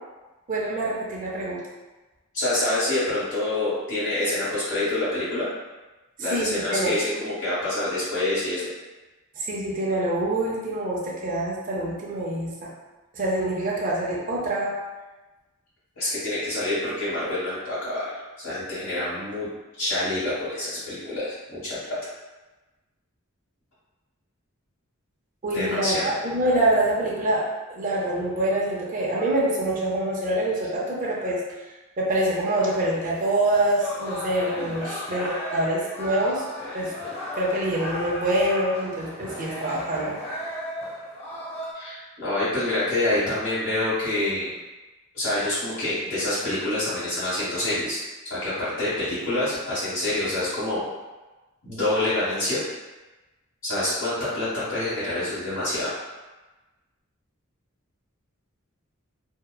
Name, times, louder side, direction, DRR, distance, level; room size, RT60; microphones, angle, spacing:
voice 1, 0.5-1.6 6.2-6.9 9.4-12.7 13.1-14.7 25.4-27.4 27.7-31.4 32.0-36.4 36.7-36.9 37.4-40.1, right 1 dB, 40° right, -5 dB, 0.5 m, -25 dB
voice 2, 2.3-5.5 6.2-8.7 15.9-18.0 18.4-19.5 19.8-21.8 25.5-26.1 41.7-44.5 45.1-48.0 48.3-50.8 51.6-52.6 53.6-55.9, left 1 dB, 70° left, -15 dB, 1.2 m, -26 dB
sound 1, 32.6-41.7, left 1 dB, 30° left, 0.6 m, -35 dB
2.7 x 2.1 x 2.2 m, 1.1 s
head